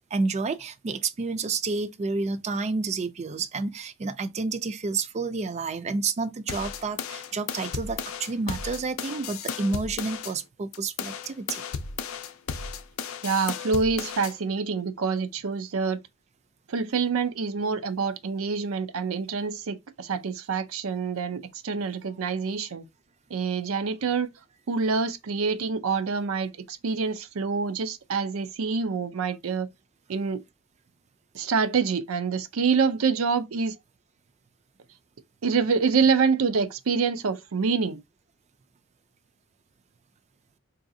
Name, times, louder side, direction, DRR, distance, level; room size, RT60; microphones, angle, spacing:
voice 1, 0.1-11.6, right 4 dB, 35° right, 0.4 m, -30 dB
sound 1, 6.5-10.3 10.7-14.3, left 6 dB, 80° left, 0.5 m, -35 dB
voice 2, 13.2-16.0 16.7-22.8 23.3-24.3 24.7-29.7 30.1-30.4 31.3-33.7 35.4-38.0, right 5 dB, 90° right, 0.5 m, -26 dB
4.7 x 2.7 x 2.6 m
head